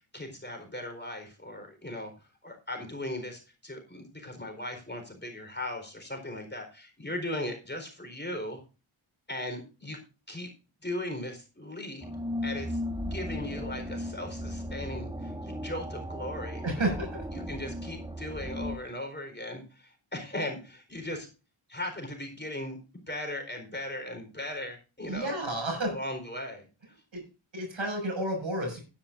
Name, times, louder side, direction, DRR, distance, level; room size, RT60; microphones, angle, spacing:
voice 1, 0.1-8.6 9.3-10.0 10.3-10.5 10.8-12.1 12.4-12.8 13.1-16.9 17.3-21.3 21.7-22.8 23.1-25.4 25.9-27.0, left 1 dB, 20° left, 4 dB, 4.3 m, -38 dB
sound 1, 12.0-18.8, equal, 10° right, 1.5 m, -36 dB
voice 2, 16.6-17.1 25.1-25.9 27.1-27.2 27.5-28.8, right 1 dB, 65° right, 3 dB, 6.5 m, -30 dB
16.0 x 10.5 x 2.6 m, 0.31 s
cardioid pair, 60°, 50 cm